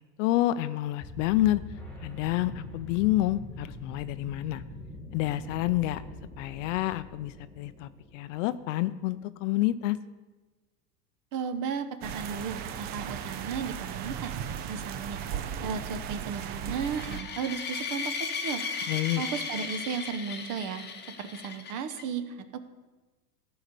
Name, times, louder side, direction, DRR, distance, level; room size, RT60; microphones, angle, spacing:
voice 1, 0.2-1.6 2.0-4.6 5.1-6.0 6.4-10.0 18.9-19.2, left 15 dB, 50° left, 14 dB, 0.5 m, -28 dB
sound 1, 1.0-8.7, left 1 dB, 5° left, 2.0 m, -44 dB
voice 2, 11.3-14.3 14.7-15.2 15.6-18.1 18.4-18.6 19.2-20.8 21.2-22.6, right 6 dB, 40° right, 11 dB, 0.9 m, -34 dB
Compiled Thunder, 12.0-17.2, right 8 dB, 25° right, 0.3 m, -36 dB
sound 2, 16.7-22.0, left 5 dB, 20° left, 1.0 m, -36 dB
13.0 x 4.8 x 6.7 m, 1.2 s
hypercardioid pair, 105°, 48 cm